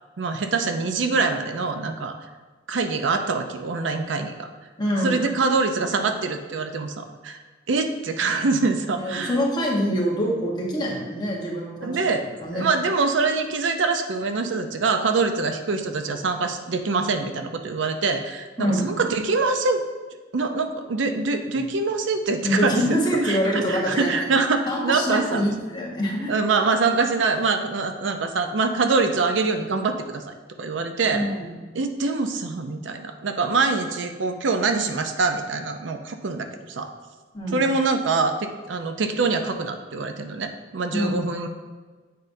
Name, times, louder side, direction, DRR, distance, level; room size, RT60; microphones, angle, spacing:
voice 1, 0.2-2.2 2.7-4.5 5.0-7.4 7.7-9.3 11.8-12.3 12.5-19.8 20.3-23.0 23.2-25.4 26.3-30.2 30.6-31.2 31.7-36.9 37.5-41.5, right 4 dB, 70° right, 6 dB, 0.5 m, -24 dB
voice 2, 4.8-5.2 8.9-12.7 18.6-18.9 22.4-24.2 24.7-26.3 31.1-31.5 37.3-37.7 40.9-41.1, equal, 25° left, -3 dB, 1.2 m, -25 dB
7.7 x 5.1 x 2.7 m, 1.4 s
head